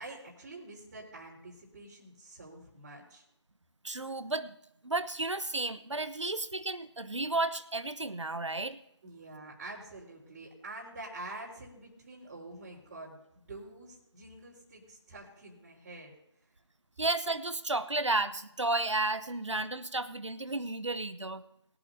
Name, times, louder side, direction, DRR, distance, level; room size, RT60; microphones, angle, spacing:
voice 1, 0.0-3.2 9.0-16.1 16.4-16.5, right 2 dB, 25° right, -9 dB, 4.1 m, -47 dB
voice 2, 3.8-4.6 4.8-8.8 17.0-21.4, right 2 dB, 85° right, 12 dB, 1.0 m, -32 dB
22.0 x 8.8 x 2.8 m, 0.79 s
figure-of-eight pair, 160°, 15 cm